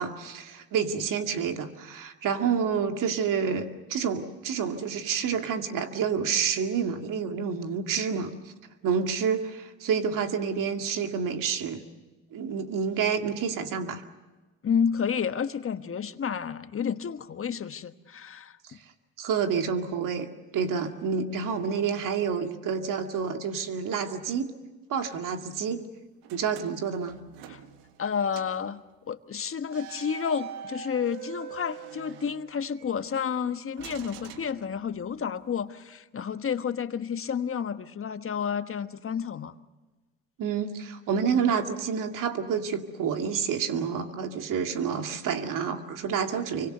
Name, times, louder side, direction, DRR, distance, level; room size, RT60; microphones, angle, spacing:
voice 1, 0.0-8.3 8.8-11.8 12.3-14.0 18.6-18.8 19.2-20.3 20.5-24.5 24.9-25.9 26.3-27.2 40.4-46.7, right 6 dB, 65° right, 6 dB, 2.2 m, -28 dB
voice 2, 14.6-18.6 27.5-27.6 28.0-39.5, left 7 dB, 40° left, 10 dB, 1.3 m, -30 dB
sound 1, 26.2-28.1 28.3-28.6 29.7-32.9 33.8-35.2, right 8 dB, 85° right, 1.6 m, -44 dB
26.0 x 24.0 x 6.7 m, 1.2 s
supercardioid pair, 70°, 34 cm